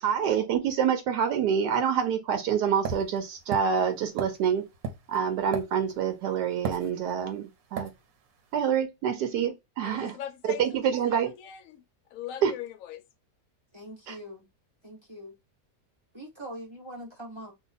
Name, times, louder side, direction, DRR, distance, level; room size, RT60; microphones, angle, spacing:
voice 1, 0.0-4.7 5.1-7.9 8.5-10.2 10.6-11.3 12.4-12.5 14.1-14.2, right 8 dB, 80° right, 1.2 m, -27 dB
sound 1, 2.9-6.1 6.6-7.3 7.8-8.0, right 5 dB, 65° right, 1.1 m, -35 dB
voice 2, 9.8-10.8 11.1-11.8 12.1-13.0, left 11 dB, 70° left, 0.8 m, -40 dB
voice 3, 13.7-14.5 14.8-15.3 16.1-17.5, equal, 45° right, 0.3 m, -42 dB
2.9 x 2.3 x 3.8 m
omnidirectional pair, 1.8 m